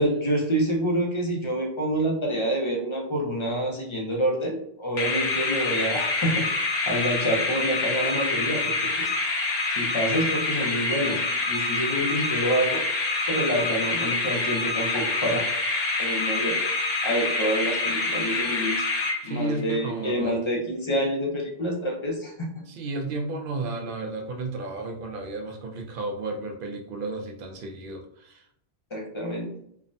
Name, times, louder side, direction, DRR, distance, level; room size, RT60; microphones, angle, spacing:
voice 1, 0.0-6.5 6.9-9.1 9.8-12.9 13.3-15.5 16.0-16.6 17.0-18.9 19.2-22.6 28.9-29.5, equal, 40° left, 0 dB, 0.4 m, -27 dB
sound 1, 5.0-19.6, left 3 dB, 75° left, 1.0 m, -26 dB
voice 2, 19.2-20.4 22.7-28.4, right 2 dB, 60° right, 3 dB, 0.6 m, -33 dB
3.3 x 2.1 x 2.5 m, 0.71 s
omnidirectional pair, 1.1 m